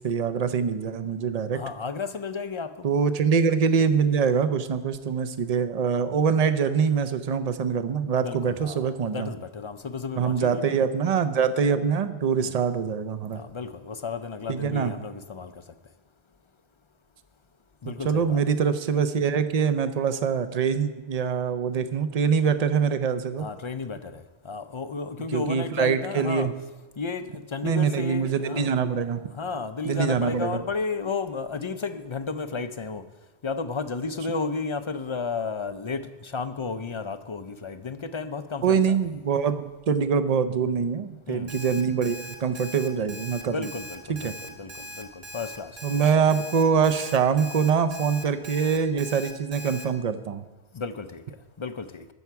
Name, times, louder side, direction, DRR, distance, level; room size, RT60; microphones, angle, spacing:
voice 1, 0.0-1.6 2.8-9.3 10.1-13.4 14.5-14.9 17.8-23.5 25.3-26.5 27.6-29.2 29.8-30.6 38.6-43.7 44.1-44.3 45.8-50.4, right 6 dB, 45° right, 11 dB, 0.7 m, -24 dB
voice 2, 1.5-2.7 8.2-10.8 12.4-12.5 13.3-15.5 17.8-18.4 23.4-26.5 27.0-28.7 29.3-33.0 33.4-39.0 41.3-41.5 43.5-44.7 45.0-45.1 45.3-45.7 46.0-46.2 50.7-51.2 51.6-52.1, left 4 dB, 40° left, 11 dB, 0.4 m, -33 dB
Alarm, 41.5-49.8, left 1 dB, 75° right, 1.7 m, -40 dB
20.5 x 7.0 x 4.7 m, 1.2 s
omnidirectional pair, 1.1 m